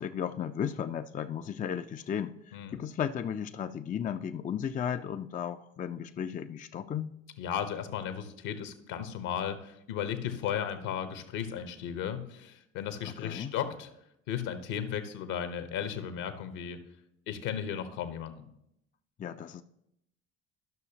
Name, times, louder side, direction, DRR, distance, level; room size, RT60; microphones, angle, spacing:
voice 1, 0.0-7.1 13.2-13.5 19.2-19.6, left 8 dB, 25° left, 9 dB, 0.4 m, -35 dB
voice 2, 7.4-13.9 14.3-16.8 17.3-18.5, left 9 dB, 65° left, 9 dB, 1.1 m, -35 dB
12.5 x 6.2 x 2.9 m, 0.79 s
hypercardioid pair, 60°, 34 cm